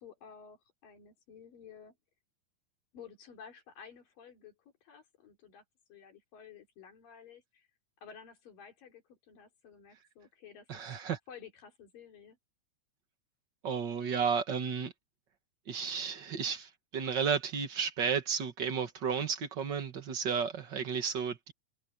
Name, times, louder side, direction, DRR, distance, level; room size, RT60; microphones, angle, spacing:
voice 1, 0.0-2.0 2.9-5.6 5.9-7.7 8.0-10.8 11.3-12.4, left 7 dB, 90° left, 5.3 m, -53 dB
voice 2, 10.7-11.2 13.6-14.9 15.7-21.5, right 6 dB, 45° right, 1.7 m, -33 dB
omnidirectional pair, 3.8 m